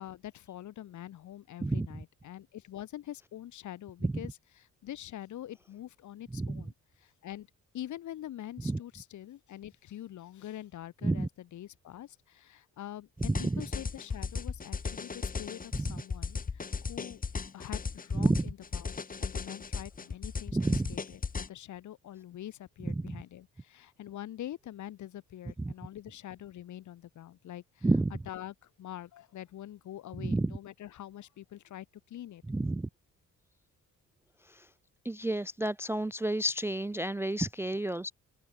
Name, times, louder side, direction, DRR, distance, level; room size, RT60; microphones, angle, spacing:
voice 1, 0.0-6.7 7.0-7.5 7.7-16.4 16.8-17.2 17.5-18.9 19.2-32.4, left 12 dB, 70° left, 1.7 m, -45 dB
voice 2, 6.3-6.6 8.6-8.8 11.0-11.3 13.2-13.6 15.7-16.0 18.1-18.4 20.5-20.9 22.9-23.2 25.6-25.7 27.8-28.1 30.2-30.6 32.5-32.9 34.5-34.7 35.1-38.1, right 2 dB, 10° right, 0.3 m, -30 dB
sound 1, 13.2-21.5, left 5 dB, 30° left, 2.1 m, -36 dB
cardioid pair, 135°, 31 cm